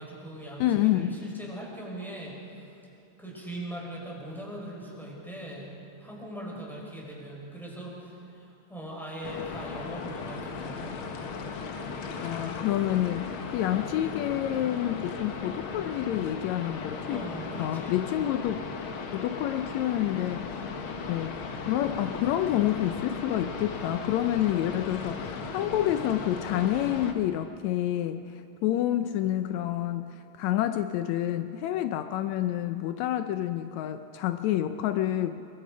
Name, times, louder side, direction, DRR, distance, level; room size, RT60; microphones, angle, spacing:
voice 1, 0.0-2.7 3.2-11.0 17.1-17.9, right 1 dB, ahead, -3 dB, 5.0 m, -40 dB
voice 2, 0.6-1.2 12.2-17.2 17.6-18.6 19.1-20.7 21.0-35.5, left 12 dB, 90° left, 9 dB, 1.6 m, -28 dB
sound 1, 9.2-27.1, left 4 dB, 55° left, 1.5 m, -37 dB
25.0 x 23.0 x 5.1 m, 2.8 s
omnidirectional pair, 4.0 m